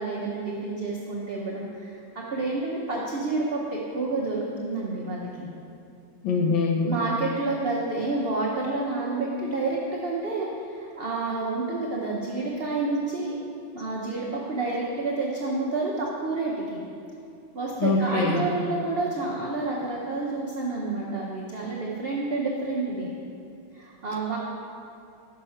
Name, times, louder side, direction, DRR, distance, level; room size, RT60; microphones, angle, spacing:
voice 1, 0.0-5.5 6.8-13.3 13.7-16.8 17.5-23.1 23.7-24.4, right 3 dB, 70° right, -4 dB, 0.5 m, -29 dB
voice 2, 6.2-6.9 17.8-18.4, left 4 dB, 75° left, 1 dB, 1.6 m, -23 dB
6.7 x 5.7 x 5.6 m, 2.5 s
omnidirectional pair, 2.2 m